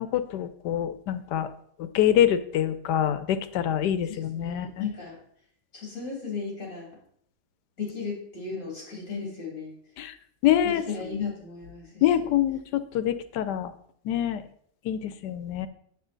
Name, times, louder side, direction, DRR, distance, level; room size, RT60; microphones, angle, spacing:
voice 1, 0.0-1.5 1.8-4.9 10.0-10.1 10.4-10.8 12.0-13.7 14.1-14.4 14.8-15.7, left 11 dB, 80° left, 13 dB, 1.2 m, -25 dB
voice 2, 4.1-5.2 5.7-6.9 7.8-9.7 10.6-12.3, left 5 dB, 45° left, -2 dB, 3.1 m, -35 dB
8.0 x 7.6 x 3.9 m, 0.64 s
omnidirectional pair, 1.8 m